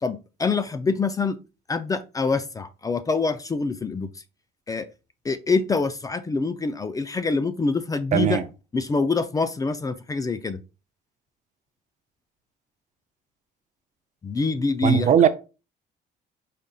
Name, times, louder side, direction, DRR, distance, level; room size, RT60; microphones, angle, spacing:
voice 1, 0.0-1.4 1.7-4.1 4.7-4.9 5.2-8.4 8.7-10.6 14.2-15.1, left 4 dB, 20° left, 0.4 m, -25 dB
voice 2, 8.1-8.4 14.8-15.3, right 9 dB, 45° right, 0.5 m, -18 dB
4.9 x 4.0 x 2.3 m
cardioid pair, 110°, 17 cm